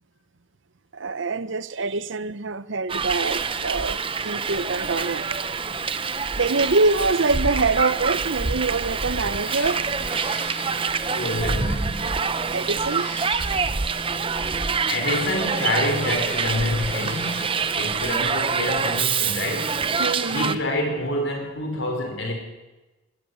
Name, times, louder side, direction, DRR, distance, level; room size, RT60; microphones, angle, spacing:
voice 1, 0.9-5.4 6.3-9.8 12.5-13.1 20.0-20.6, right 3 dB, 60° right, 0.7 m, -25 dB
Hiss, 2.9-20.6, right 5 dB, 25° right, 0.7 m, -26 dB
Cat, 9.4-11.5 12.6-13.7 15.0-17.6, left 1 dB, 10° left, 5.7 m, -41 dB
voice 2, 11.1-12.2 14.9-22.3, left 1 dB, 60° left, 5.2 m, -27 dB
20.0 x 14.5 x 9.7 m
head